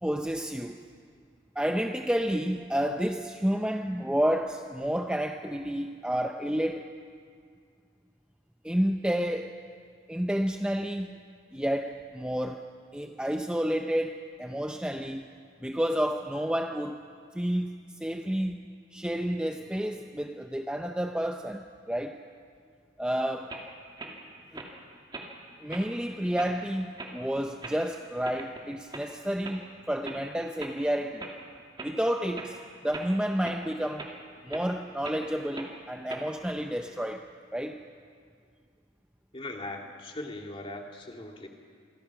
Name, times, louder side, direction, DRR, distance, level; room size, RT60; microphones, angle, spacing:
voice 1, 0.0-0.8 1.6-6.9 8.6-9.6 10.1-11.2 11.5-15.3 15.6-17.0 17.3-22.2 23.0-23.5 24.1-24.2 24.5-24.6 25.6-31.3 31.8-32.6 32.8-34.1 34.4-37.2 37.5-37.8, equal, 5° right, 5 dB, 0.6 m, -30 dB
sound 1, 23.5-23.6 24.0-24.1 24.5-24.7 25.1-25.3 25.7-25.9 26.4-26.5 27.0-27.1 27.6-27.8 28.2-28.6 28.9-29.0 29.4-29.6 30.0-30.2 30.6-30.7 31.2-31.3 31.8-31.9 32.3-32.5 32.9-33.1 33.4-33.6 34.0-34.1 34.5-34.6 35.0-35.2 35.5-35.7 36.1-36.5, right 2 dB, 25° right, 2.4 m, -40 dB
voice 2, 39.3-41.5, left 2 dB, 25° left, 2 dB, 2.3 m, -39 dB
27.5 x 23.0 x 6.0 m, 2.1 s
head